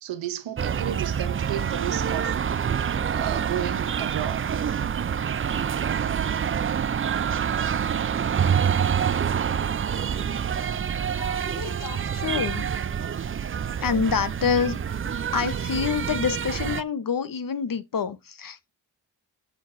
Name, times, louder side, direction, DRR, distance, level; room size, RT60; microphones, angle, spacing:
voice 1, 0.0-2.4 3.0-4.5, right 11 dB, 80° right, 0.9 m, -32 dB
sound 1, 0.6-16.8, right 8 dB, 30° right, 0.4 m, -26 dB
voice 2, 11.2-12.7 13.8-14.8 15.3-18.7, left 6 dB, 45° left, 1.0 m, -27 dB
7.5 x 5.8 x 2.6 m
supercardioid pair, 45°, 45 cm